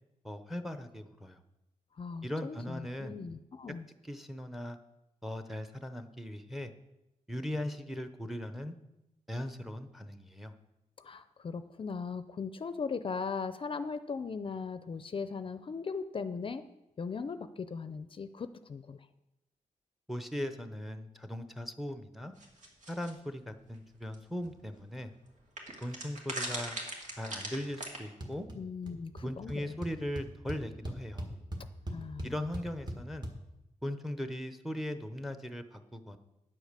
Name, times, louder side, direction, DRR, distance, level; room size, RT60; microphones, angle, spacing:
voice 1, 0.2-1.4 2.2-3.2 4.0-4.8 5.2-6.7 7.3-8.7 9.3-10.5 20.1-22.3 22.9-25.1 25.8-26.8 27.2-28.5 29.2-31.3 32.2-33.3 33.8-36.2, left 1 dB, ahead, 9 dB, 0.7 m, -39 dB
voice 2, 2.0-3.9 11.0-16.6 17.0-19.1 28.5-29.8 31.9-32.4, left 5 dB, 40° left, 11 dB, 0.5 m, -38 dB
sound 1, 22.4-23.1 24.1-24.2 24.4-24.5 25.6-28.0, right 2 dB, 65° right, 2.3 m, -39 dB
sound 2, 28.2-28.6 28.8-29.2 29.5-29.6 29.8-33.3, equal, 30° right, 1.6 m, -39 dB
9.6 x 8.2 x 6.7 m, 0.95 s
wide cardioid pair, 145°, 13 cm